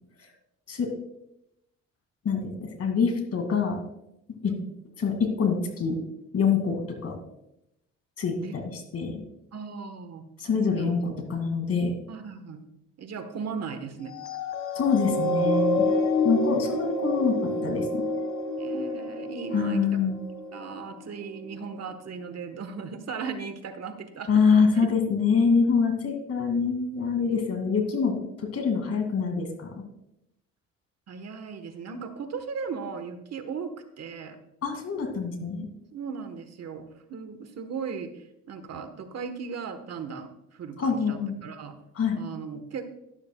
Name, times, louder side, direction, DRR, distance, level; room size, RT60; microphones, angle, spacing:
voice 1, 2.2-3.8 4.4-4.5 5.0-6.0 6.3-7.1 8.2-9.1 10.4-11.9 14.8-15.9 16.2-18.0 19.5-20.2 24.3-29.8 34.6-35.7 40.8-41.3 42.0-42.2, left 5 dB, 55° left, 4 dB, 2.3 m, -25 dB
voice 2, 9.5-10.3 10.5-10.9 12.1-12.6 13.0-14.2 18.6-20.0 20.5-24.5 24.7-24.9 27.3-27.4 31.1-34.4 35.9-41.8 42.1-42.9, right 5 dB, 55° right, 8 dB, 1.3 m, -37 dB
sound 1, 14.1-20.8 21.4-21.6, left 1 dB, 75° left, 1.6 m, -28 dB
12.0 x 12.0 x 2.3 m, 0.83 s
cardioid pair, 90°, 30 cm